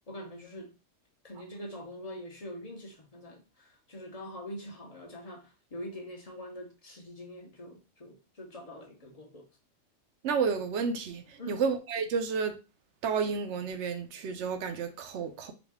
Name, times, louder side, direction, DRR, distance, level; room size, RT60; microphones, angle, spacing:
voice 1, 0.1-0.7 1.2-9.5 11.4-11.6, equal, 35° left, 0.7 m, -44 dB
voice 2, 10.2-12.6 13.0-15.5, right 5 dB, 70° right, 0.9 m, -31 dB
3.9 x 2.2 x 3.4 m
omnidirectional pair, 1.3 m